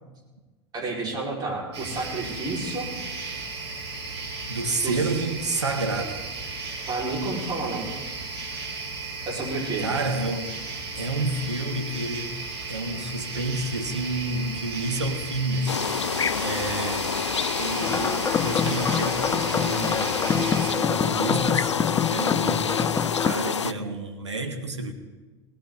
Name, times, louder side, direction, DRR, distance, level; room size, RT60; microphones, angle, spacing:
voice 1, 0.7-2.9 4.8-5.0 6.9-7.9 9.3-9.9, right 3 dB, 30° right, -3 dB, 5.8 m, -30 dB
sound 1, 1.7-20.7, right 3 dB, 70° right, 4.6 m, -35 dB
voice 2, 4.5-6.2 9.8-10.5 10.9-12.3 12.7-17.1 17.6-22.8 23.2-24.9, right 2 dB, 90° right, 4 dB, 1.6 m, -30 dB
sound 2, 15.7-23.7, left 6 dB, 90° left, 0.4 m, -28 dB
sound 3, 17.8-23.3, left 7 dB, 20° left, 0.4 m, -26 dB
18.5 x 17.5 x 4.2 m, 1.2 s
figure-of-eight pair, 90°, 15 cm